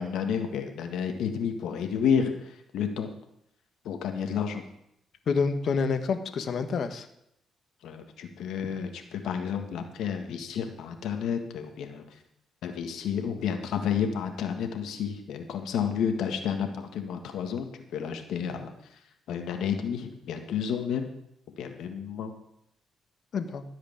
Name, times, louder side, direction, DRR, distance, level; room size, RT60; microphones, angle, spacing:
voice 1, 0.0-2.3 2.7-3.1 3.9-4.6 7.8-12.0 12.6-18.7 19.3-21.1 21.6-22.3, left 7 dB, 80° left, 5 dB, 1.7 m, -30 dB
voice 2, 5.3-7.1 23.3-23.6, left 5 dB, 60° left, 8 dB, 1.3 m, -28 dB
14.0 x 5.1 x 8.7 m, 0.77 s
cardioid pair, 90°, 0 cm